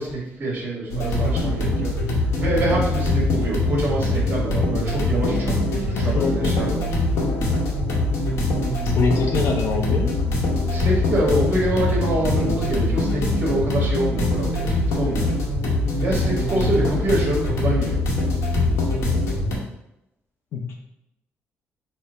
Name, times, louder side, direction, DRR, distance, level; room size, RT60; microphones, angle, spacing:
voice 1, 0.0-7.0 10.7-15.3 16.0-18.0, right 1 dB, 35° right, -3 dB, 1.3 m, -26 dB
sound 1, 0.9-19.6, left 2 dB, 85° left, 0.9 m, -23 dB
voice 2, 6.1-6.5 9.0-10.1 20.5-20.8, left 4 dB, 65° left, 2 dB, 0.5 m, -24 dB
4.3 x 2.0 x 3.8 m, 0.85 s
cardioid pair, 105°, 5 cm